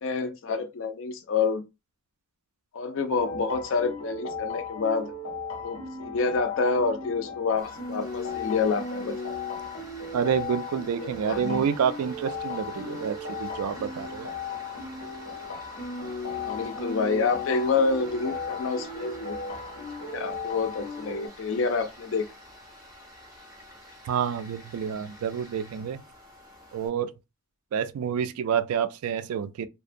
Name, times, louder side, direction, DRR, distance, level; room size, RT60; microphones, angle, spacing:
voice 1, 0.0-1.6 2.7-5.1 5.6-9.4 10.9-11.6 16.3-22.3, left 4 dB, 60° left, 0.4 m, -28 dB
sound 1, 3.1-21.3, left 3 dB, 85° left, 0.7 m, -36 dB
Tools, 7.6-26.9, equal, 15° right, 0.4 m, -47 dB
voice 2, 10.1-14.3 24.0-26.0 26.7-27.1 27.7-29.7, right 7 dB, 75° right, 0.3 m, -28 dB
2.7 x 2.1 x 2.5 m
head